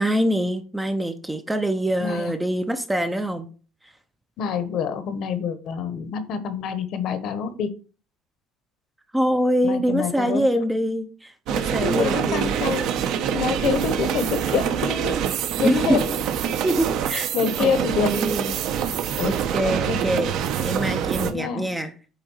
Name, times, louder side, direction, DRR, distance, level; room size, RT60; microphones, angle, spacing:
voice 1, 0.0-3.5 9.1-12.6 15.6-16.0 16.6-17.3 17.6-17.7 18.0-18.5 19.2-21.9, right 1 dB, 5° right, 7 dB, 0.6 m, -24 dB
voice 2, 2.0-2.3 4.4-7.7 9.6-10.6 11.8-12.9 13.3-15.2 15.6-16.1 17.1-18.3 19.1-20.0 21.2-21.8, left 7 dB, 45° left, 11 dB, 1.1 m, -27 dB
sound 1, 11.5-21.3, right 9 dB, 55° right, 0.9 m, -25 dB
9.1 x 3.9 x 5.5 m, 0.37 s
cardioid pair, 180°, 0 cm